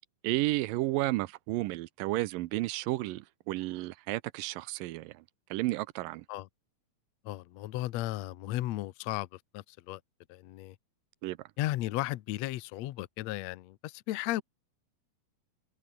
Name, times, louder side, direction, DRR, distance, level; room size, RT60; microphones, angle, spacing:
voice 1, 0.2-5.2 5.5-6.2 11.2-11.4, right 18 dB, 80° right, 2.1 m, -32 dB
voice 2, 7.2-10.0 10.3-10.8 11.6-14.4, left 16 dB, 90° left, 1.5 m, -35 dB
omnidirectional pair, 4.3 m